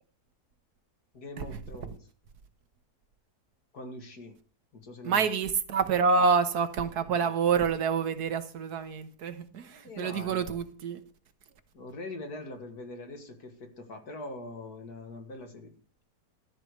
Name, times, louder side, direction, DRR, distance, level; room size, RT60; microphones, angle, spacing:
voice 1, 1.1-2.1 3.7-4.4 4.7-5.3 9.8-10.6 11.7-15.7, left 2 dB, 70° left, 2.5 m, -43 dB
voice 2, 5.0-11.0, right 5 dB, 75° right, 1.6 m, -27 dB
13.0 x 4.8 x 8.3 m
omnidirectional pair, 1.7 m